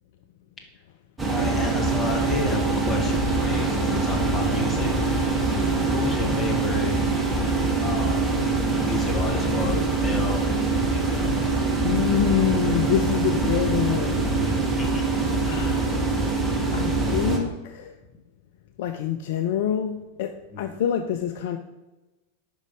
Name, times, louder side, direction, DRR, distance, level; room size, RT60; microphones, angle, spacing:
voice 1, 1.2-5.3 5.9-7.1 7.8-8.3 8.8-11.4 14.0-15.0 20.5-20.8, left 2 dB, 20° left, 2 dB, 1.3 m, -32 dB
sound 1, 1.2-17.4, right 3 dB, 10° right, 1.2 m, -24 dB
voice 2, 11.8-14.3 15.4-16.0 16.7-17.9 18.8-20.3 20.6-21.6, left 10 dB, 50° left, 7 dB, 0.3 m, -26 dB
5.3 x 5.0 x 4.8 m, 1.1 s
figure-of-eight pair, 90°, 0 cm